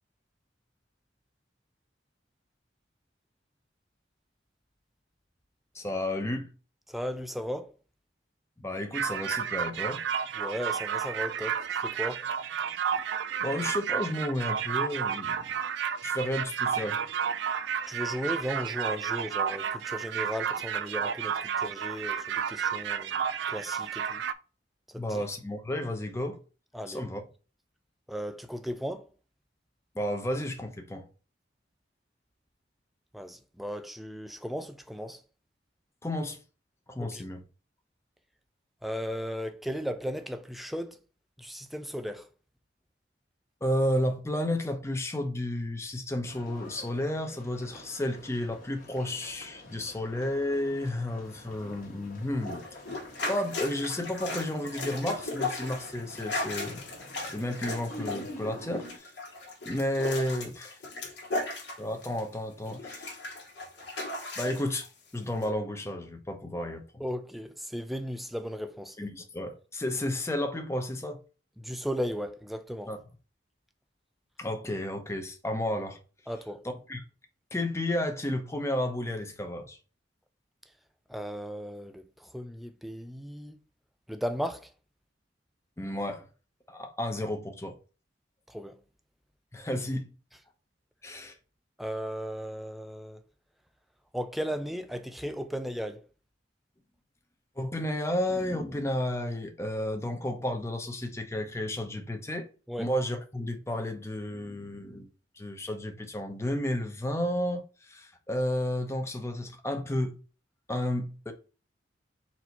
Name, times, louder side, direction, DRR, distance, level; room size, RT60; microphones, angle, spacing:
voice 1, 5.7-6.5 8.6-10.0 13.4-15.4 16.0-17.5 25.0-26.4 26.9-27.2 29.9-31.1 36.0-36.4 36.9-37.4 43.6-52.6 53.3-56.8 57.2-59.1 59.6-60.8 61.8-63.2 64.4-64.9 65.1-67.0 69.0-71.2 72.9-73.0 74.4-76.0 76.9-77.0 77.5-79.8 85.8-86.3 86.7-87.8 89.5-90.1 91.0-91.3 97.6-102.5 102.8-105.1 105.4-110.2 110.7-111.3, left 1 dB, 15° left, 0.7 m, -32 dB
voice 2, 6.9-7.7 10.4-12.2 17.9-23.2 23.5-24.2 24.9-25.2 26.7-27.1 28.1-29.1 33.1-35.2 37.0-37.2 38.8-41.0 41.4-42.3 67.0-69.0 71.6-72.9 76.3-76.6 81.1-83.6 84.1-84.7 88.5-88.8 91.8-93.2 94.1-96.0 102.7-102.9, equal, ahead, 0.4 m, -36 dB
sound 1, 8.9-24.3, right 7 dB, 70° right, 0.4 m, -31 dB
sound 2, 46.3-59.0, left 1 dB, 50° left, 1.3 m, -48 dB
sound 3, 52.4-62.3 62.7-64.9 65.4-65.5, left 2 dB, 70° left, 1.3 m, -37 dB
4.3 x 2.7 x 4.4 m
head